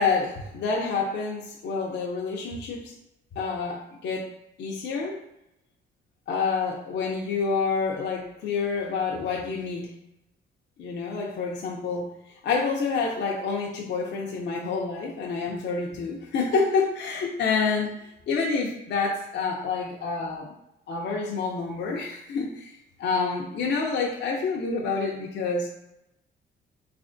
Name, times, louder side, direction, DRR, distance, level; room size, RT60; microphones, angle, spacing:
voice 1, 0.0-3.0 3.3-4.3 4.6-5.2 6.3-9.9 10.8-20.5 20.9-25.7, left 4 dB, 60° left, -1 dB, 0.6 m, -28 dB
3.4 x 3.3 x 2.6 m, 0.83 s
cardioid pair, 90°, 20 cm